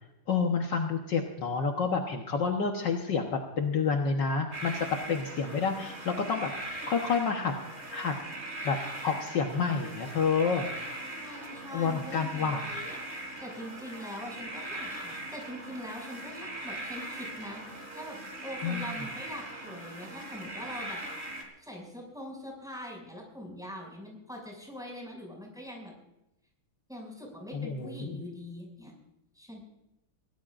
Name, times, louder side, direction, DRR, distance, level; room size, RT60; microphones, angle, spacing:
voice 1, 0.3-7.5 7.9-8.1 8.6-8.8 9.0-10.7 11.7-12.6 18.6-18.9 27.5-28.2, left 5 dB, 60° left, 2 dB, 1.8 m, -29 dB
sound 1, 4.5-21.4, right 1 dB, 30° right, 3.8 m, -40 dB
voice 2, 11.1-21.0 21.6-25.9 26.9-28.9 29.3-29.6, equal, ahead, -1 dB, 6.4 m, -43 dB
24.5 x 18.0 x 2.6 m, 0.90 s
omnidirectional pair, 2.3 m